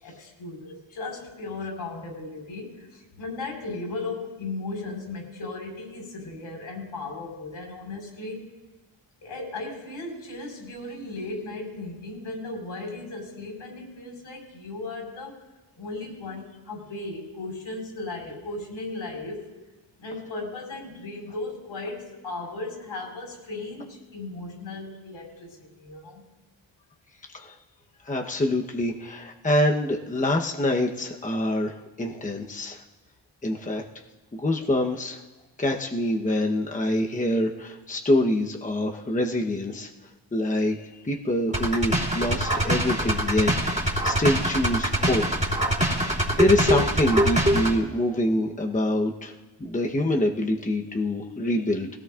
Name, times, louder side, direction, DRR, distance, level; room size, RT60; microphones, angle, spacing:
voice 1, 0.0-8.4 9.2-15.3 15.8-19.4 20.0-26.2, left 2 dB, 75° left, -1 dB, 5.1 m, -36 dB
voice 2, 28.0-32.8 33.4-33.8 34.3-35.2 35.6-39.9 40.3-43.5 43.8-45.2 45.8-49.3 49.6-51.9, left 1 dB, 15° left, 1 dB, 1.0 m, -25 dB
sound 1, 41.5-47.8, right 1 dB, 15° right, 3.2 m, -24 dB
19.0 x 17.0 x 2.5 m, 1.1 s
cardioid pair, 75°, 47 cm